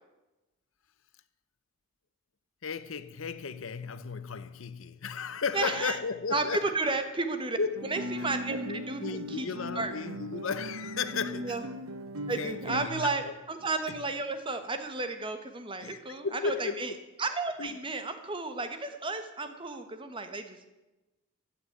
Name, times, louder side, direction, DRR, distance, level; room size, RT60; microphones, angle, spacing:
voice 1, 2.6-6.7 7.6-7.9 8.1-8.3 8.7-11.6 12.1-13.3 13.9-14.0 15.8-17.0 17.6-17.8, left 5 dB, 65° left, 0.7 m, -35 dB
voice 2, 5.5-6.0 6.3-7.6 7.9-9.5 9.7-9.9 11.4-11.6 12.3-16.9 17.2-20.6, right 3 dB, 25° right, 1.1 m, -33 dB
Guitar, 7.7-12.9, right 1 dB, 75° right, 1.0 m, -39 dB
15.5 x 5.9 x 9.8 m
head